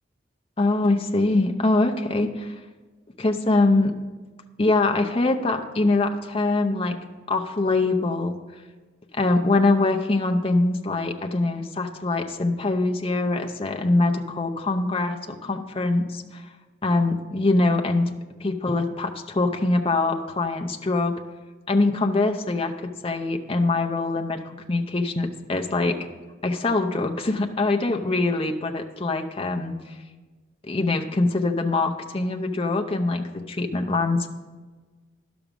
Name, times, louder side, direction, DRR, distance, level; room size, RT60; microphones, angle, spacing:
voice 1, 0.6-2.5 3.2-3.9 4.6-7.0 7.3-8.4 9.2-16.5 16.8-18.1 18.4-21.1 21.7-26.0 26.4-30.0 30.6-34.3, left 2 dB, 25° left, 4 dB, 0.6 m, -23 dB
11.5 x 6.0 x 5.2 m, 1.3 s
head